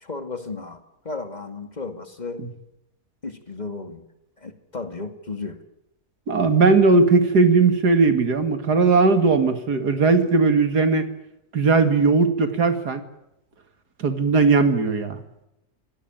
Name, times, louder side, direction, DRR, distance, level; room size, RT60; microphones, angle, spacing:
voice 1, 0.0-2.5 3.2-4.0 4.4-5.6, left 3 dB, 25° left, 7 dB, 2.4 m, -34 dB
voice 2, 6.3-11.1 11.5-13.0 14.0-15.2, right 4 dB, 80° right, 8 dB, 2.8 m, -18 dB
27.0 x 17.5 x 9.0 m, 0.86 s
omnidirectional pair, 1.7 m